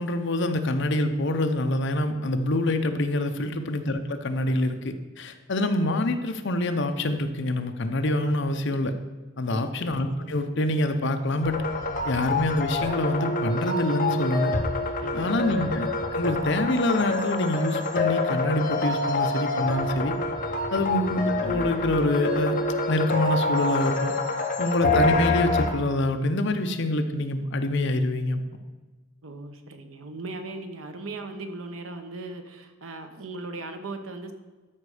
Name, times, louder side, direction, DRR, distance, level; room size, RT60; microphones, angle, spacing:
voice 1, 0.0-8.9 9.4-11.6 12.0-14.5 15.1-20.1 20.7-22.6 22.9-24.1 24.6-28.4, left 1 dB, 60° left, 7 dB, 0.8 m, -26 dB
sound 1, 11.4-25.7, left 2 dB, 40° left, 1.1 m, -27 dB
voice 2, 15.0-15.6 20.7-20.9 29.2-34.3, right 2 dB, 85° right, 6 dB, 1.1 m, -38 dB
13.0 x 5.2 x 4.9 m, 1.3 s
head